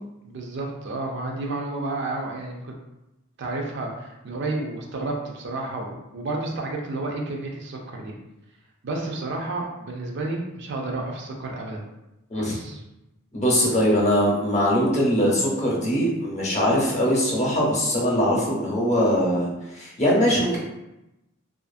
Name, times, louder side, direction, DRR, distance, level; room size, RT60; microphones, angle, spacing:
voice 1, 0.2-2.7 3.4-8.1 8.8-11.9 12.4-12.8, right 2 dB, 55° right, 0 dB, 0.4 m, -31 dB
voice 2, 13.3-20.6, equal, 35° left, -5 dB, 0.7 m, -22 dB
2.4 x 2.4 x 2.5 m, 0.93 s
head